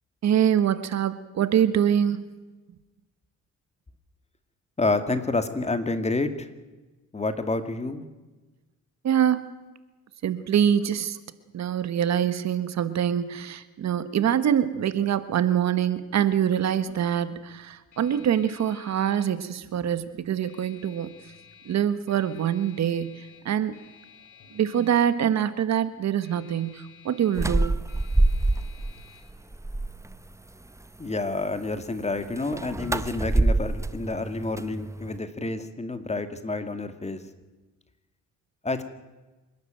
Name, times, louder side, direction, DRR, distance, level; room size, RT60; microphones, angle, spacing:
voice 1, 0.2-2.2 9.0-9.5 10.2-11.2 11.5-21.1 21.6-23.7 24.5-27.8, right 9 dB, 60° right, 13 dB, 1.4 m, -24 dB
voice 2, 4.8-6.5 7.1-8.0 31.0-37.2 38.6-38.8, left 3 dB, 20° left, 9 dB, 2.2 m, -29 dB
sound 1, 15.2-32.0, left 7 dB, 85° left, 5.9 m, -55 dB
sound 2, 27.4-28.9 29.3-30.1 32.4-35.2, right 2 dB, 10° right, 0.8 m, -25 dB
26.0 x 12.5 x 9.1 m, 1.2 s
cardioid pair, 90°, 30 cm